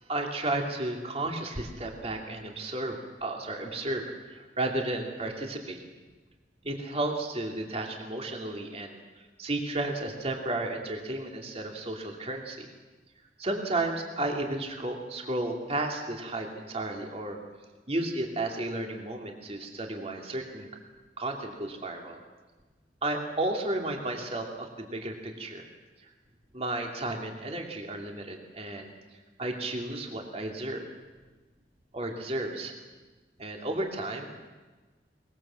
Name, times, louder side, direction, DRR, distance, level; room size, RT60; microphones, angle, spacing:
voice 1, 0.1-5.8 6.6-9.0 9.4-12.7 13.4-17.4 17.9-20.7 21.2-22.2 23.0-25.6 26.0-26.1 26.5-28.9 29.4-30.8 31.9-32.8 33.4-34.4, right 2 dB, 35° right, 2 dB, 2.8 m, -33 dB
22.5 x 21.0 x 7.6 m, 1.3 s
head